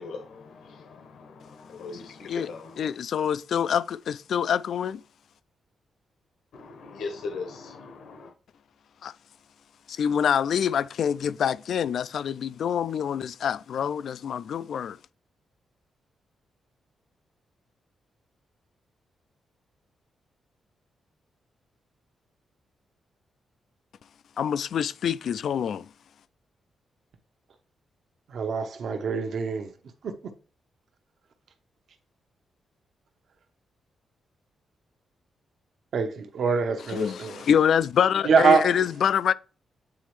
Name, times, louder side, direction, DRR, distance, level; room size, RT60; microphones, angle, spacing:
voice 1, 0.0-2.9 6.5-8.3, left 4 dB, 75° left, 1.1 m, -39 dB
voice 2, 1.7-2.5 2.8-5.0 9.0-9.1 9.9-15.0 24.4-25.9 36.9-39.3, left 8 dB, 55° left, 0.3 m, -26 dB
voice 3, 28.3-29.7 30.0-30.1 35.9-37.4 38.2-38.7, right 5 dB, 55° right, 0.9 m, -24 dB
8.3 x 4.2 x 3.1 m
wide cardioid pair, 180°, 0 cm